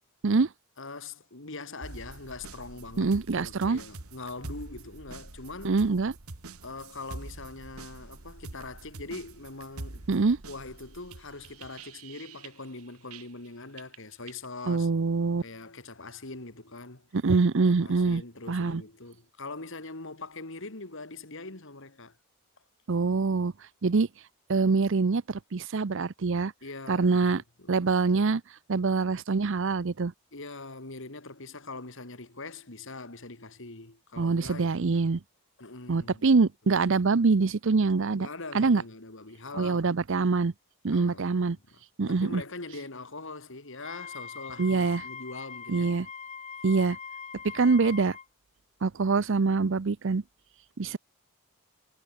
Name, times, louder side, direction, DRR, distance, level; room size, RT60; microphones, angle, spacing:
voice 1, 0.8-5.8 6.6-10.1 10.5-14.9 15.4-17.1 17.7-22.2 26.6-27.9 30.3-35.1 35.6-36.3 38.0-39.9 40.9-41.8 42.1-45.9, left 3 dB, 60° left, 2.6 m, -42 dB
sound 1, 1.8-13.5 13.8-14.5, right 2 dB, 85° right, 1.9 m, -45 dB
voice 2, 3.0-3.8 5.6-6.1 10.1-10.4 14.7-15.4 17.1-18.2 18.5-18.8 22.9-23.5 23.8-24.1 24.5-26.5 26.9-27.4 27.7-28.4 28.7-30.1 34.2-35.2 35.9-38.3 38.5-38.8 39.6-40.5 40.8-41.6 42.0-42.4 44.6-45.0 45.7-46.1 46.6-47.0 47.5-48.2 48.8-50.2 50.8-51.0, right 4 dB, 60° right, 0.6 m, -24 dB
Wind instrument woodwind instrument, 43.7-48.3, left 6 dB, 30° left, 2.0 m, -42 dB
head